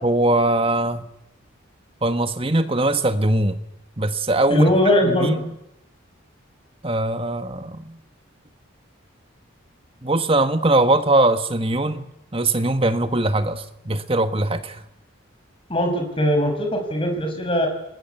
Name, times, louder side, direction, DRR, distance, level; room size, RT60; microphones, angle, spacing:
voice 1, 0.0-1.0 2.0-3.6 4.0-4.7 5.0-5.5 6.8-8.0 10.0-12.1 12.3-14.8, right 2 dB, 25° right, 9 dB, 1.6 m, -21 dB
voice 2, 4.5-5.4 15.7-17.7, left 1 dB, 25° left, 3 dB, 6.2 m, -20 dB
30.0 x 19.5 x 8.3 m, 0.84 s
head